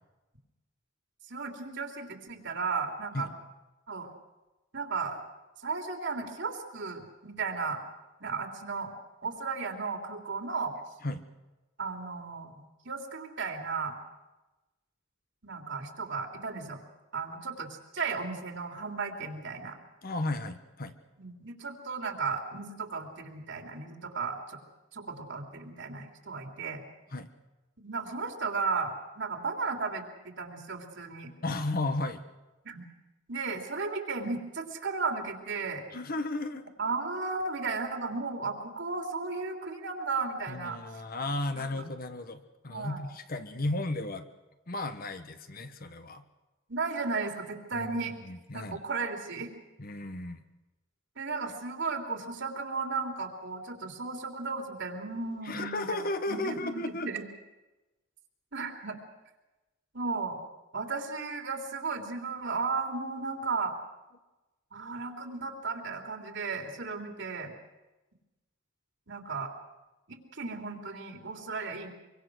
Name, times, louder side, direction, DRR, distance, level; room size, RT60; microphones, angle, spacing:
voice 1, 1.3-3.3 3.9-4.1 4.7-5.2 5.6-7.8 8.2-8.9 9.2-10.7 11.8-12.5 12.8-13.9 15.4-16.8 17.1-19.8 21.2-24.6 24.9-26.8 27.8-31.3 32.6-32.8 33.3-35.8 36.8-40.8 41.5-41.8 42.7-43.0 46.7-48.1 48.5-49.5 51.2-56.0 56.3-57.3 58.5-59.0 59.9-60.4 60.7-63.7 64.7-67.5 69.1-69.5 70.1-71.9, right 4 dB, 65° right, 3 dB, 3.3 m, -35 dB
voice 2, 20.0-20.9 27.1-27.3 31.4-32.2 35.9-36.7 40.5-44.3 44.7-46.2 47.7-47.9 48.3-48.8 49.8-50.4 55.4-57.1, left 2 dB, 50° left, 9 dB, 1.4 m, -34 dB
24.5 x 24.0 x 6.3 m, 1.1 s
head